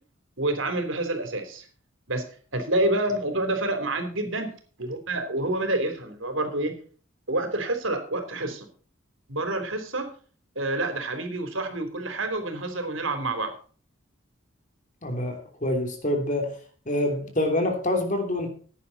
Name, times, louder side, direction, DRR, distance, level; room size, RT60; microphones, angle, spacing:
voice 1, 0.4-1.7 2.1-2.2 2.5-4.5 4.8-6.7 7.3-8.7 9.3-10.1 10.6-13.5, right 2 dB, 75° right, 6 dB, 3.5 m, -28 dB
voice 2, 15.0-16.6 16.9-18.5, left 1 dB, 40° left, 4 dB, 3.0 m, -26 dB
16.0 x 10.5 x 4.2 m, 0.41 s
head